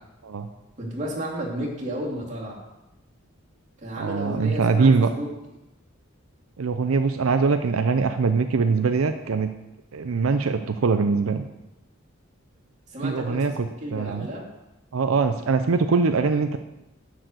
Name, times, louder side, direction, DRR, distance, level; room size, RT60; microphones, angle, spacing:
voice 1, 0.8-2.6 3.8-5.3 12.9-14.4, equal, 35° right, -3 dB, 2.6 m, -32 dB
voice 2, 4.0-5.1 6.6-9.5 9.9-11.4 13.0-14.3 14.9-16.6, right 4 dB, 90° right, 8 dB, 0.5 m, -22 dB
10.0 x 4.7 x 7.8 m, 0.97 s
head